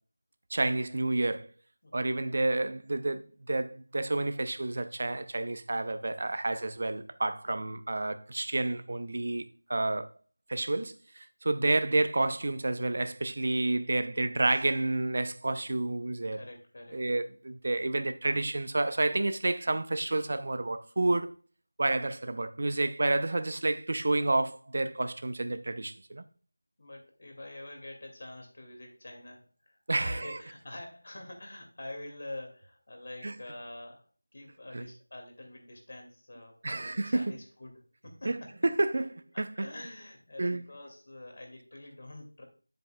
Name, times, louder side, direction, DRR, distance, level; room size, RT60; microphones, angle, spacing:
voice 1, 0.5-1.5 1.9-9.4 9.7-10.1 10.5-16.4 16.9-21.3 21.8-26.2 29.9-30.4 33.2-33.3 34.7-34.8 36.6-37.3 38.2-39.7 40.4-40.6, right 2 dB, 45° right, 0.7 m, -30 dB
voice 2, 1.8-2.2 16.3-17.0 26.8-39.0 39.3-42.4, left 1 dB, 45° left, 2.4 m, -46 dB
9.0 x 7.9 x 2.3 m
figure-of-eight pair, 170°, 0 cm